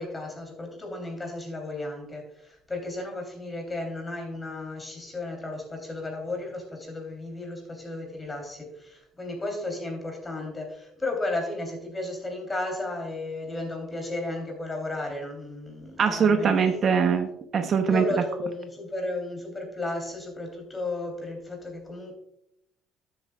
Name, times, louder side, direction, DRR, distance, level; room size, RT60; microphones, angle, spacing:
voice 1, 0.0-16.8 17.8-22.1, left 2 dB, 15° left, 2 dB, 3.3 m, -34 dB
voice 2, 16.0-18.0, right 6 dB, 45° right, 7 dB, 0.8 m, -22 dB
12.5 x 8.0 x 2.4 m, 0.77 s
cardioid pair, 120°, 0 cm